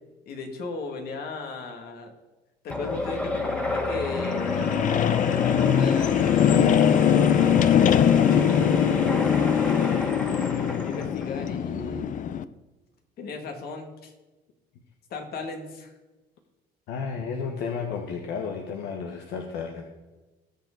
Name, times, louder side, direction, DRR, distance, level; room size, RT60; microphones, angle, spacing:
voice 1, 0.3-2.1 2.6-4.7 5.4-7.6 9.6-12.1 13.2-14.1 15.1-15.9, left 4 dB, 65° left, 4 dB, 2.1 m, -37 dB
sound 1, 2.7-12.4, left 9 dB, 50° left, 0.5 m, -22 dB
sound 2, 2.7-11.5, left 1 dB, 5° left, 1.7 m, -32 dB
voice 2, 8.3-9.5 16.9-19.8, left 5 dB, 85° left, 3 dB, 1.2 m, -33 dB
18.0 x 6.9 x 3.9 m, 1.1 s
cardioid pair, 110°, 17 cm